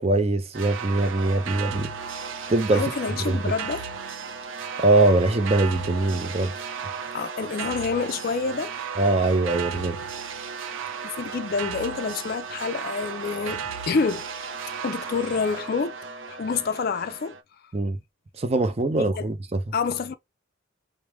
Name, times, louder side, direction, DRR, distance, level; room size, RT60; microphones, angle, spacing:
voice 1, 0.0-1.9 2.5-2.9 3.3-3.5 4.8-6.5 9.0-10.0 17.7-18.0 18.4-19.6, right 2 dB, 30° right, 0.5 m, -22 dB
sound 1, 0.5-17.4, right 6 dB, 75° right, 0.6 m, -35 dB
voice 2, 2.7-3.9 7.1-8.7 11.0-13.6 13.9-14.2 14.8-16.0 16.3-17.3 19.0-19.2 19.7-20.1, left 5 dB, 45° left, 0.3 m, -27 dB
4.6 x 2.0 x 3.3 m
head